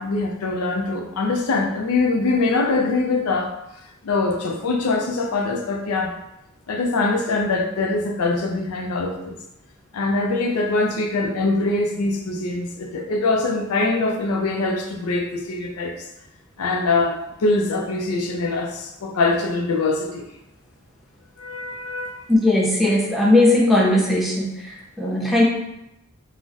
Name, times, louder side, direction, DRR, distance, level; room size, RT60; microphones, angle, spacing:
voice 1, 0.0-3.5 4.0-6.2 6.7-9.4 9.9-16.1 16.6-20.3 21.4-22.3, left 3 dB, 85° left, 3 dB, 0.4 m, -23 dB
voice 2, 22.3-25.4, left 1 dB, ahead, -4 dB, 0.5 m, -18 dB
3.9 x 2.1 x 2.5 m, 0.86 s
head